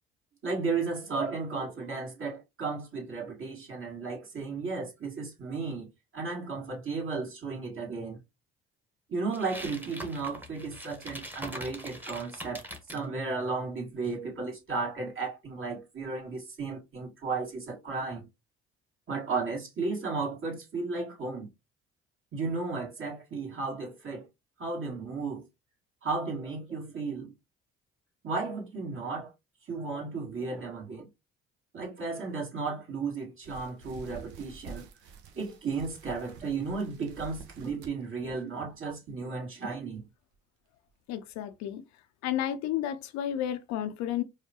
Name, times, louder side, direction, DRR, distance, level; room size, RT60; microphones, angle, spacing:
voice 1, 0.4-8.2 9.1-12.6 12.9-18.3 19.1-21.5 22.3-24.3 24.6-25.4 26.0-27.3 28.2-29.3 29.7-31.1 31.7-34.9 35.4-40.1, right 4 dB, 40° right, 1.9 m, -34 dB
sound 1, 9.3-13.0, equal, 5° right, 1.1 m, -42 dB
sound 2, 33.4-39.1 39.5-39.8 40.3-40.4 40.9-41.0, right 5 dB, 65° right, 0.8 m, -49 dB
voice 2, 41.1-41.8 42.2-44.2, left 11 dB, 60° left, 0.5 m, -32 dB
4.7 x 2.2 x 2.8 m
hypercardioid pair, 50°, 31 cm